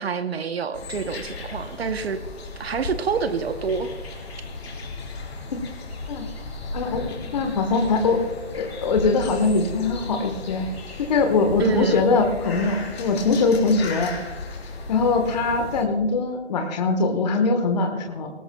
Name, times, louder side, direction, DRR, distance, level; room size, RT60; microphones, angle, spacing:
voice 1, 0.0-2.2 2.6-3.9 11.6-12.1, right 5 dB, 60° right, 10 dB, 0.9 m, -27 dB
sound 1, 0.7-15.8, left 3 dB, 60° left, 3.9 m, -36 dB
voice 2, 6.7-8.2 8.5-10.7 11.0-14.1 14.9-18.3, left 4 dB, 35° left, 4 dB, 1.2 m, -22 dB
18.5 x 18.5 x 2.2 m, 1.2 s
hypercardioid pair, 155°, 36 cm